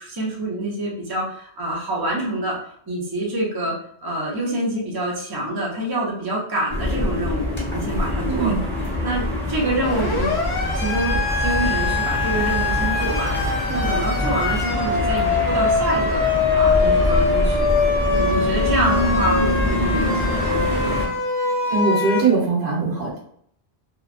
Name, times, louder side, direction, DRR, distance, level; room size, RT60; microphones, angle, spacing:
voice 1, 0.0-2.5 2.9-3.7 4.0-7.5 7.7-8.5 9.0-10.4 10.7-13.4 13.7-16.2 16.5-17.7 18.1-21.0, right 1 dB, 25° right, -4 dB, 0.6 m, -26 dB
sound 1, 6.7-21.1, left 1 dB, 10° left, 0.9 m, -24 dB
voice 2, 8.2-8.6 21.7-23.2, right 4 dB, 65° right, -4 dB, 1.3 m, -21 dB
Siren, 9.8-22.2, left 4 dB, 45° left, 0.8 m, -23 dB
3.0 x 2.3 x 2.5 m, 0.65 s
omnidirectional pair, 1.2 m